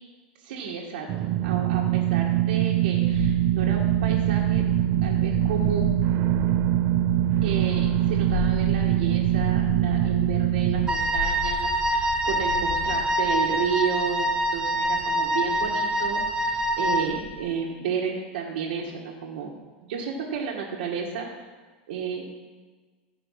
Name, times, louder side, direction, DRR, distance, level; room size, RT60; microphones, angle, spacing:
voice 1, 0.4-1.1 1.4-4.6 5.0-5.9 7.4-19.5 19.8-21.3 21.9-22.2, right 6 dB, 75° right, -3 dB, 1.6 m, -32 dB
sound 1, 1.1-10.9, right 14 dB, 40° right, 0.5 m, -23 dB
sound 2, 3.1-13.1, left 6 dB, 70° left, 1.1 m, -34 dB
Wind instrument woodwind instrument, 10.9-17.2, right 1 dB, 15° right, 0.9 m, -25 dB
15.5 x 5.2 x 5.8 m, 1.4 s
supercardioid pair, 145°, 5 cm